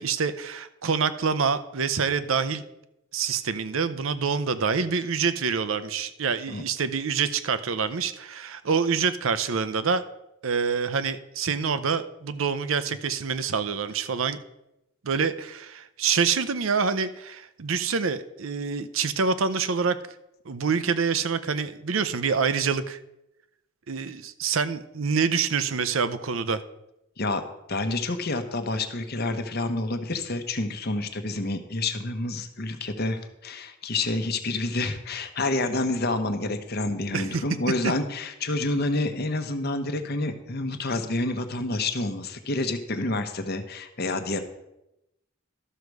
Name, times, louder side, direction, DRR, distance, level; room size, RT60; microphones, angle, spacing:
voice 1, 0.0-2.6 3.1-10.0 10.4-14.4 15.0-20.0 20.4-23.0 23.9-26.6 37.1-37.4 37.8-37.9, right 5 dB, 80° right, 13 dB, 0.6 m, -26 dB
voice 2, 27.7-44.4, left 2 dB, 50° left, 8 dB, 0.9 m, -28 dB
12.5 x 6.5 x 4.7 m, 0.88 s
head